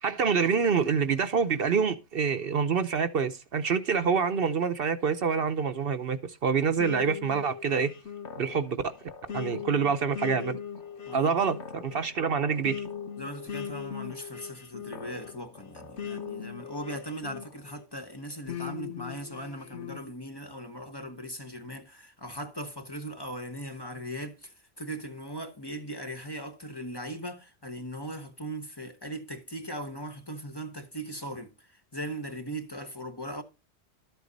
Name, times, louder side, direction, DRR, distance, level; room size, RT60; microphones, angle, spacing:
voice 1, 0.0-7.9 8.4-8.8 9.3-10.6 11.1-12.8, right 6 dB, 60° right, 1.0 m, -26 dB
sound 1, 6.8-17.9 18.5-20.0, left 7 dB, 90° left, 1.3 m, -40 dB
voice 2, 11.1-11.4 13.2-33.4, right 1 dB, 20° left, 1.1 m, -39 dB
12.5 x 8.1 x 4.0 m
omnidirectional pair, 1.1 m